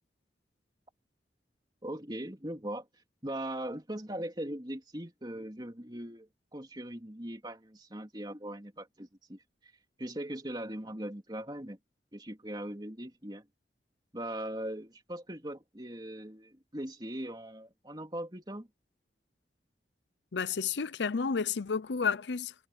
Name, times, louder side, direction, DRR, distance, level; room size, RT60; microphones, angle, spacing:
voice 1, 1.8-9.7 10.0-11.8 12.1-13.5 14.1-18.7, right 1 dB, 25° right, 3.1 m, -40 dB
voice 2, 20.3-22.5, left 5 dB, 85° left, 0.6 m, -31 dB
head